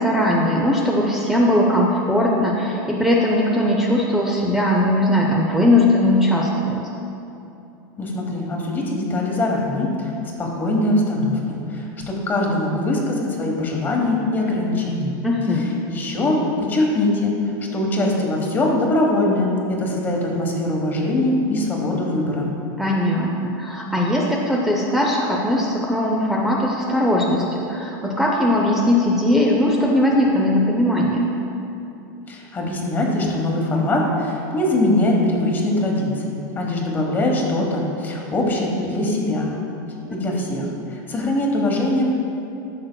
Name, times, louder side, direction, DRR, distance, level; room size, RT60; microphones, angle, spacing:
voice 1, 0.0-6.9 15.2-15.7 22.8-31.2 40.1-40.2, left 1 dB, 5° right, -2 dB, 0.5 m, -19 dB
voice 2, 8.0-10.1 10.4-15.1 15.9-17.4 17.7-22.5 32.3-39.5 40.1-42.1, left 1 dB, 20° left, -1 dB, 1.1 m, -22 dB
13.0 x 6.4 x 2.2 m, 2.8 s
supercardioid pair, 160°, 11 cm